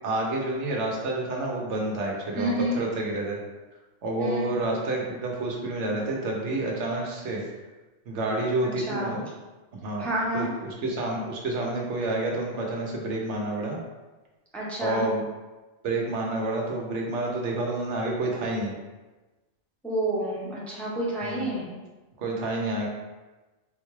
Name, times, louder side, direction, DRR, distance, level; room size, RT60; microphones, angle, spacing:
voice 1, 0.0-3.4 4.0-7.4 8.1-9.3 9.8-10.1 10.3-13.8 14.8-15.2 15.8-18.7 21.2-21.5 22.2-22.9, right 2 dB, 85° right, -1 dB, 1.0 m, -29 dB
voice 2, 2.4-2.8 4.2-4.5 8.6-9.1 10.0-10.5 14.5-15.0 19.8-21.6, right 1 dB, ahead, -6 dB, 0.6 m, -29 dB
3.9 x 2.3 x 3.1 m, 1.2 s
omnidirectional pair, 1.2 m